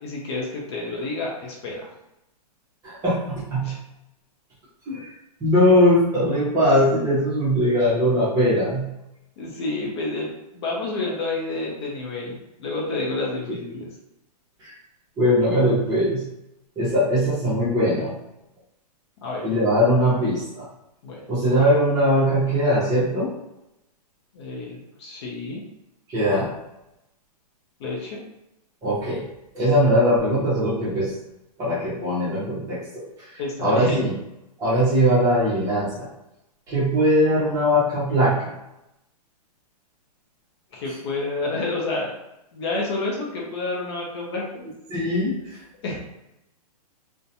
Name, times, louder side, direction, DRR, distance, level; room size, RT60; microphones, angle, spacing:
voice 1, 0.0-1.9 3.6-3.8 9.4-13.9 19.2-19.5 21.0-21.2 24.3-25.6 27.8-28.2 33.4-34.0 40.7-42.2 42.5-44.6 45.8-46.0, left 3 dB, 40° left, -3 dB, 0.6 m, -29 dB
voice 2, 2.8-3.7 4.9-5.1 5.4-8.9 14.6-14.7 15.2-16.3 16.8-18.1 19.4-20.7 21.3-23.3 26.1-26.4 28.8-29.3 29.5-31.2 31.6-34.1 34.6-36.1 36.7-38.5 44.9-45.6, equal, 15° right, -8 dB, 0.7 m, -20 dB
2.4 x 2.2 x 2.7 m, 0.88 s
hypercardioid pair, 160°, 21 cm